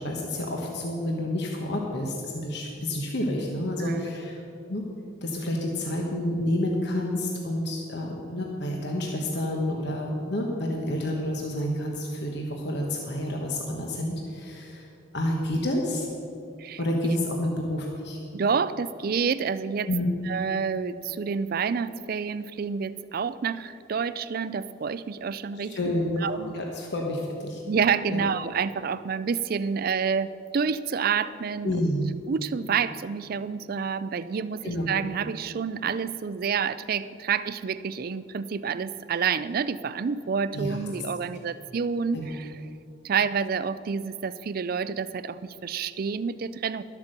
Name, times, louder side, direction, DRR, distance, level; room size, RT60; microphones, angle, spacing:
voice 1, 0.0-4.4 4.7-4.8 5.2-14.9 15.1-16.1 16.8-18.2 19.9-20.2 25.6-27.6 28.1-28.2 31.6-32.1 34.6-34.9 40.5-40.8 42.1-42.3, left 1 dB, 55° left, 0 dB, 1.1 m, -29 dB
voice 2, 18.3-19.9 20.3-25.8 26.2-26.5 27.7-31.7 32.3-42.5 43.0-46.8, right 6 dB, 45° right, 15 dB, 0.4 m, -28 dB
12.0 x 8.2 x 6.6 m, 2.6 s
head